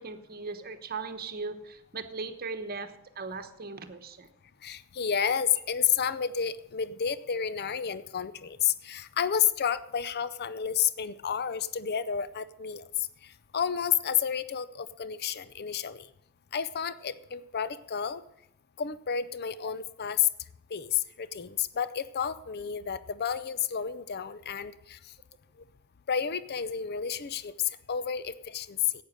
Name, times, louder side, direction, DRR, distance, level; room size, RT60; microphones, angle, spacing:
voice 1, 0.0-4.3, right 4 dB, 45° right, 9 dB, 1.1 m, -38 dB
voice 2, 4.6-12.8 13.5-16.0 16.5-18.2 18.8-20.3 20.7-25.0 26.1-27.5 27.9-28.8, left 8 dB, 45° left, 16 dB, 0.6 m, -30 dB
11.0 x 8.8 x 6.5 m, 0.79 s
head